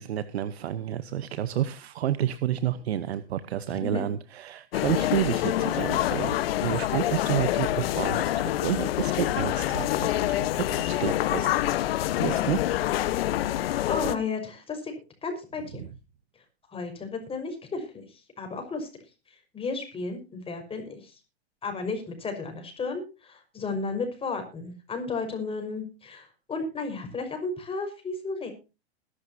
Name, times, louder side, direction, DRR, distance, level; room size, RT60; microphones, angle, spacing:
voice 1, 0.0-11.7 12.0-12.6 13.2-13.3 15.8-15.9, right 11 dB, 75° right, 14 dB, 1.1 m, -30 dB
voice 2, 3.7-4.1 12.2-12.4 13.4-14.9 15.2-15.8 16.7-18.9 19.5-21.2 21.6-28.5, left 4 dB, 15° left, 5 dB, 5.6 m, -33 dB
sound 1, 4.7-14.2, left 14 dB, 65° left, 1.3 m, -26 dB
21.0 x 11.5 x 2.8 m, 0.31 s
hypercardioid pair, 120°, 32 cm